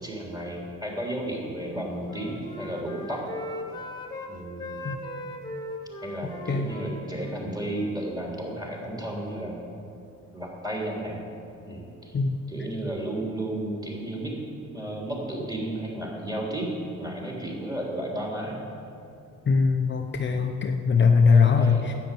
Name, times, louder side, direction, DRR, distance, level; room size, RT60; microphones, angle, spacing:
voice 1, 0.0-3.3 4.3-4.8 6.0-9.6 10.3-11.2 11.6-12.2 12.5-14.3 14.7-18.6 20.3-20.6 21.3-21.9, right 1 dB, 10° right, -2 dB, 3.6 m, -33 dB
Wind instrument woodwind instrument, 1.6-4.3 4.6-8.2, left 1 dB, 15° left, 1.7 m, -39 dB
voice 2, 19.5-21.9, left 5 dB, 40° left, 4 dB, 0.8 m, -21 dB
10.0 x 8.1 x 9.2 m, 2.6 s
cardioid pair, 90°, 30 cm